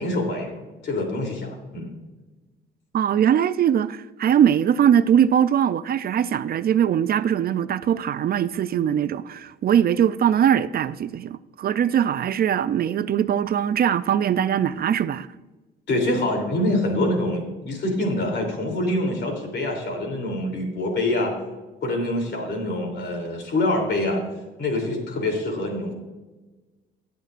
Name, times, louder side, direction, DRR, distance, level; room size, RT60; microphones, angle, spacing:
voice 1, 0.0-1.9 15.9-21.4 21.8-24.2 24.6-25.9, left 1 dB, 60° left, 3.1 m, -25 dB
voice 2, 2.9-15.3, right 9 dB, 50° right, 0.4 m, -21 dB
17.5 x 8.1 x 2.5 m
cardioid pair, 90°, 20 cm